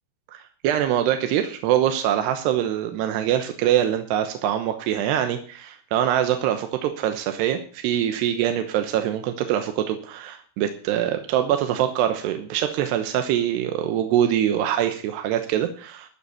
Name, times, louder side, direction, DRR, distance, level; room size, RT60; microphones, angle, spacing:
voice 1, 0.3-16.1, right 10 dB, 75° right, 7 dB, 3.0 m, -24 dB
13.0 x 7.2 x 8.6 m, 0.42 s
omnidirectional pair, 5.2 m